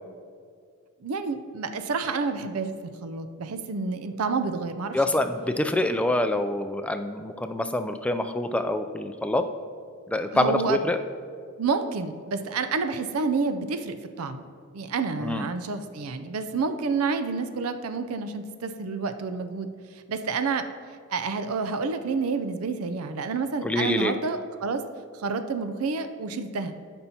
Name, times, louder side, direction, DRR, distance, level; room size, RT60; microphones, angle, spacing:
voice 1, 1.0-5.2 10.3-10.8 11.6-14.4 14.7-19.7 20.1-20.7 21.1-24.8 25.1-26.7, right 4 dB, 80° right, 9 dB, 0.5 m, -29 dB
voice 2, 4.9-9.4 10.1-11.0 15.2-15.4 23.6-24.1, left 1 dB, 5° left, 7 dB, 0.3 m, -26 dB
13.0 x 5.4 x 2.8 m, 2.2 s
head